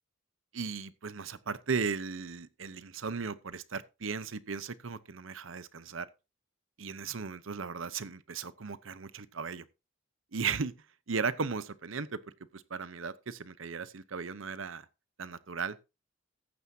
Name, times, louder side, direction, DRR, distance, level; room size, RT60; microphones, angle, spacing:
voice 1, 0.5-6.1 6.8-9.7 10.3-10.7 11.1-12.2 12.5-14.9 15.2-15.8, right 5 dB, 75° right, 0.8 m, -36 dB
14.5 x 9.4 x 2.8 m
head